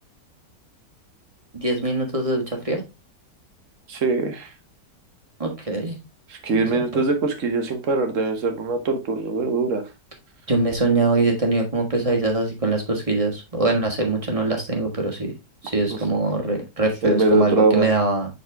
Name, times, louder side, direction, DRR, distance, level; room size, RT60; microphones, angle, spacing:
voice 1, 1.5-2.8 5.4-6.0 6.5-7.0 10.5-15.3 15.7-18.3, right 2 dB, 20° right, 2 dB, 1.5 m, -23 dB
voice 2, 3.9-4.5 6.3-9.8 17.0-17.9, right 3 dB, 50° right, 6 dB, 1.4 m, -22 dB
6.7 x 4.2 x 3.4 m, 0.25 s
omnidirectional pair, 1.9 m